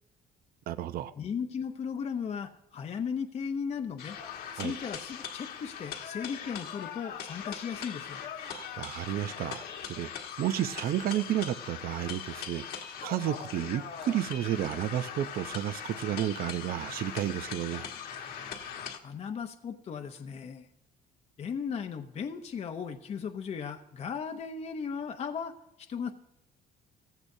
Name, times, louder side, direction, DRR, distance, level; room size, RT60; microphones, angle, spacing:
voice 1, 0.7-1.1 4.6-4.7 8.4-17.9, right 12 dB, 60° right, 13 dB, 0.6 m, -32 dB
voice 2, 1.2-4.2 4.5-8.3 19.0-20.7 21.4-26.1, left 6 dB, 40° left, 5 dB, 0.7 m, -36 dB
sound 1, 4.0-19.0, left 8 dB, 70° left, 1.4 m, -41 dB
16.5 x 15.0 x 2.7 m, 0.91 s
cardioid pair, 110°, 17 cm